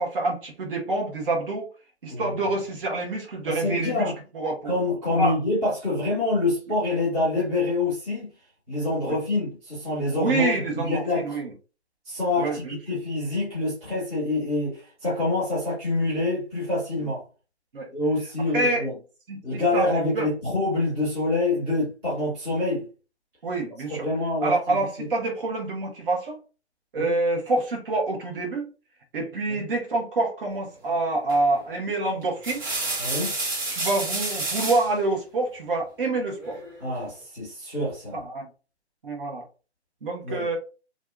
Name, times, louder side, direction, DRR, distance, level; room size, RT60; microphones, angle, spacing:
voice 1, 0.0-1.7 2.0-4.7 5.1-5.3 9.1-9.2 10.2-11.5 12.4-12.8 17.7-17.9 18.5-18.9 19.3-20.3 23.4-24.1 24.4-26.4 26.9-28.6 29.1-32.6 33.7-36.6 38.1-38.5 39.0-39.4 40.0-40.6, right 2 dB, 50° right, 1.2 m, -27 dB
voice 2, 3.4-4.1 4.7-8.3 8.7-11.4 12.0-17.2 17.9-18.9 19.4-22.9 23.9-25.1 27.0-27.1 29.5-29.6 33.0-33.4 36.8-38.2 40.2-40.5, left 2 dB, 5° right, 0.5 m, -26 dB
sound 1, 31.3-31.6 32.2-34.9 36.4-37.0, right 2 dB, 30° right, 1.3 m, -30 dB
2.7 x 2.3 x 2.4 m
figure-of-eight pair, 150°, 34 cm